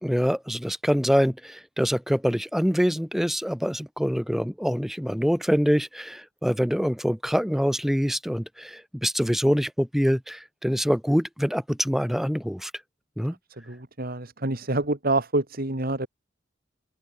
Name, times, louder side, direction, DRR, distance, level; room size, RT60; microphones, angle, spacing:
voice 1, 0.0-12.7 13.2-13.3, equal, ahead, 3.1 m, -25 dB
voice 2, 13.7-16.1, right 2 dB, 50° right, 2.6 m, -27 dB
open air
head